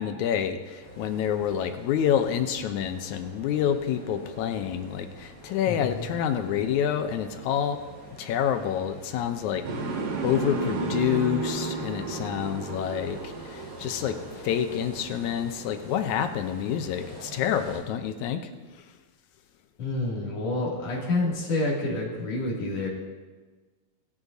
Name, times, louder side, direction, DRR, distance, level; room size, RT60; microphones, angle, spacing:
voice 1, 0.0-7.8 8.2-9.6 10.2-18.4, left 9 dB, 75° left, 8 dB, 1.8 m, -28 dB
sound 1, 0.8-17.8, equal, 5° right, 4.4 m, -46 dB
voice 2, 5.7-6.1 19.8-22.9, left 2 dB, 50° left, -4 dB, 3.5 m, -28 dB
sound 2, 9.6-15.6, right 3 dB, 70° right, 3.0 m, -33 dB
21.0 x 9.8 x 2.7 m, 1.3 s
omnidirectional pair, 3.9 m